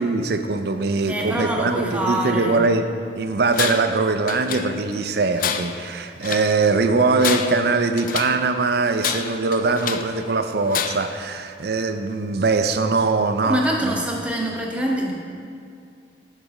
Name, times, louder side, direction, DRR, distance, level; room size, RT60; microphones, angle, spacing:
voice 1, 0.0-2.9 3.2-13.9, right 3 dB, 60° right, 8 dB, 0.5 m, -22 dB
voice 2, 1.1-2.6 13.4-15.1, right 1 dB, 5° right, -2 dB, 0.8 m, -24 dB
Tools, 3.5-4.0 4.3-5.0 5.4-6.5 7.1-8.4 9.0-10.1 10.7-11.2, left 8 dB, 50° left, 0.4 m, -28 dB
9.1 x 4.1 x 4.9 m, 2.4 s
head